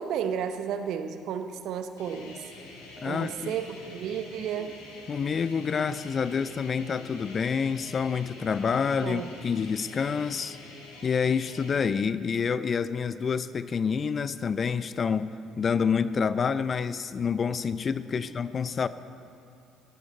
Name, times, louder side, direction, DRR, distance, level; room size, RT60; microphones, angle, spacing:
voice 1, 0.0-2.5 3.0-4.8 9.0-9.3, right 8 dB, 60° right, 9 dB, 0.9 m, -33 dB
sound 1, 2.0-11.8, left 2 dB, 80° left, 2.6 m, -46 dB
voice 2, 3.0-3.5 5.1-10.6 11.0-15.3 15.6-18.9, left 6 dB, 40° left, 15 dB, 0.5 m, -28 dB
17.5 x 14.5 x 4.2 m, 2.5 s
hypercardioid pair, 50°, 0 cm